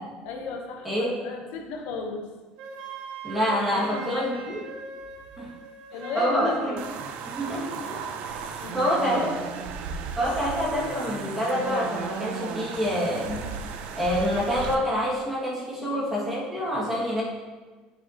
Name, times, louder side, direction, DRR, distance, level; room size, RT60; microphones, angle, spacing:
voice 1, 0.2-2.3 3.7-4.6 5.9-6.9 8.6-9.3 15.9-16.1, left 4 dB, 70° left, 2 dB, 1.0 m, -34 dB
Wind instrument woodwind instrument, 2.6-6.8, right 4 dB, 70° right, 1.2 m, -41 dB
voice 2, 3.2-4.6 5.4-5.5 6.1-6.8 7.2-8.0 8.2-9.3 10.2-13.5 14.0-17.2, equal, 10° right, -7 dB, 2.1 m, -27 dB
sound 1, 6.8-14.8, right 6 dB, 55° right, 0.6 m, -35 dB
8.7 x 7.0 x 3.0 m, 1.3 s
cardioid pair, 160°, 3 cm